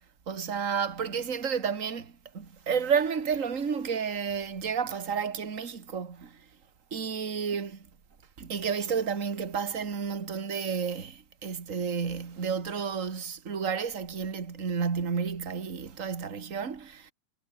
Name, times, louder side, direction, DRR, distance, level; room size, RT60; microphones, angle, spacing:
voice 1, 0.3-6.5 6.9-7.9 8.4-17.1, right 6 dB, 35° right, 1.3 m, -31 dB
omnidirectional pair, 4.6 m